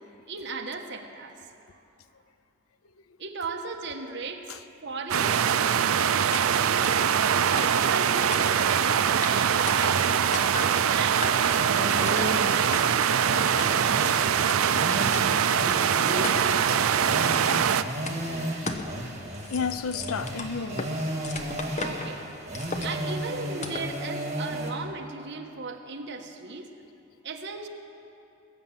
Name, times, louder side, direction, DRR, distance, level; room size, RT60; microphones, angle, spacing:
voice 1, 0.3-1.4 1.7-1.8 3.2-5.9 6.3-7.1 7.5-14.9 16.0-17.8 21.7-22.2 22.5-26.7 27.2-27.7, right 4 dB, 60° right, 1.3 m, -37 dB
sound 1, 5.1-17.8, right 8 dB, 90° right, 0.5 m, -23 dB
sound 2, 6.3-6.4 6.8-7.0 7.6-8.0 8.3-8.8 9.2-9.3 9.7-10.1 10.3-10.7 11.2-11.6 12.1-12.3 12.7-12.8 13.6-14.0 14.5-14.6 15.1-15.2 15.7-15.8 16.2-16.6 17.3-17.7 18.1-18.2 18.7-18.9 19.2-20.9 21.2-22.1 22.5-23.1 23.6-23.9, left 3 dB, 35° left, 1.0 m, -36 dB
voice 2, 7.3-7.7 19.5-21.0, left 5 dB, 85° left, 0.5 m, -32 dB
sound 3, 11.2-24.7, right 1 dB, 35° right, 1.9 m, -34 dB
20.5 x 9.0 x 7.3 m
head